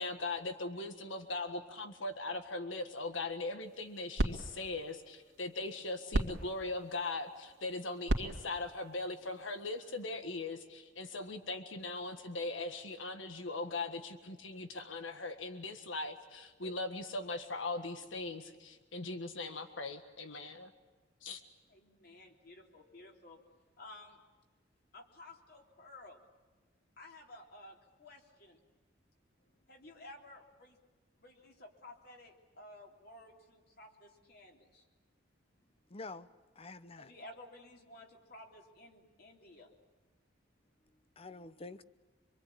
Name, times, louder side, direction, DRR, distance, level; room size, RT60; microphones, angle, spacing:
voice 1, 0.0-20.7 21.2-21.4, left 2 dB, 85° left, 1.6 m, -40 dB
sound 1, 3.6-10.0, right 1 dB, 90° right, 2.3 m, -39 dB
voice 2, 21.7-23.4 23.8-24.2 24.9-26.2 27.0-28.6 29.7-30.8 31.2-34.9 37.0-39.7, left 2 dB, 55° left, 3.5 m, -54 dB
voice 3, 35.9-36.3 36.6-37.1 41.2-41.8, left 3 dB, 30° left, 0.8 m, -47 dB
26.0 x 23.0 x 8.7 m
head